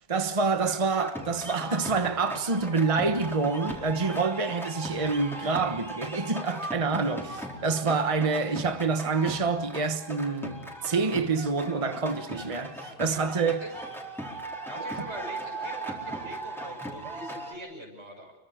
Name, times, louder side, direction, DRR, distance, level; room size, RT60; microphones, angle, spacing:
voice 1, 0.1-13.6, right 4 dB, 30° right, 1.2 m, -27 dB
sound 1, 1.0-17.5, right 1 dB, ahead, 4.4 m, -38 dB
voice 2, 13.1-13.7 14.6-18.3, right 1 dB, 85° right, 6.8 m, -43 dB
29.5 x 24.0 x 5.0 m
omnidirectional pair, 1.1 m